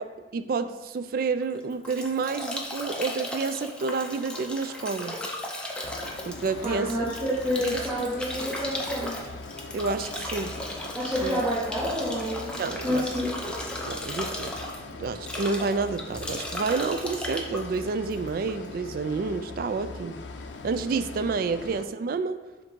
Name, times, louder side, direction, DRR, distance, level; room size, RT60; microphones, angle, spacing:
voice 1, 0.3-5.2 6.3-7.1 7.6-8.1 9.7-10.7 11.2-11.4 12.6-13.1 13.9-14.6 15.0-20.2 20.6-22.4, right 4 dB, 55° right, 11 dB, 0.3 m, -29 dB
Bathtub (filling or washing) / Drip / Trickle dribble, 1.4-18.6, left 1 dB, 5° left, 0.6 m, -36 dB
sound 1, 5.8-21.8, left 3 dB, 90° left, 0.5 m, -41 dB
voice 2, 6.6-9.3 10.9-13.3, equal, 20° right, -11 dB, 1.5 m, -29 dB
7.3 x 2.6 x 5.1 m, 1.2 s
head